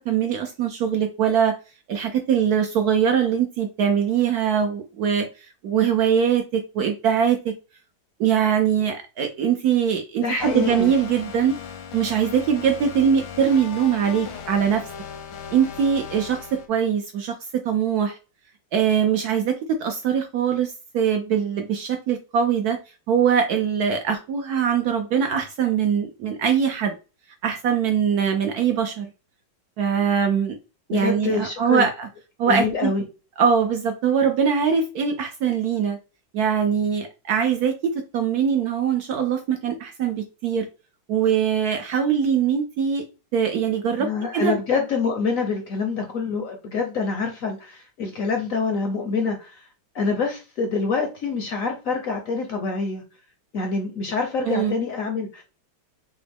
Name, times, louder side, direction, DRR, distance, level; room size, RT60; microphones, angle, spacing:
voice 1, 0.1-1.6 1.9-7.5 8.2-11.6 11.9-14.9 15.5-18.2 18.7-22.8 23.1-26.9 27.4-29.1 29.8-30.6 30.9-32.1 32.4-32.9 33.4-36.0 36.3-40.7 41.1-43.0 43.3-44.5 54.5-54.8, right 7 dB, 70° right, 1.0 m, -22 dB
voice 2, 10.2-10.9 30.9-31.8 32.5-33.0 44.0-49.6 49.9-53.0 53.5-55.4, left 4 dB, 60° left, 0.9 m, -26 dB
sound 1, 10.4-16.7, left 6 dB, 80° left, 1.6 m, -37 dB
6.0 x 2.1 x 3.4 m
omnidirectional pair, 2.1 m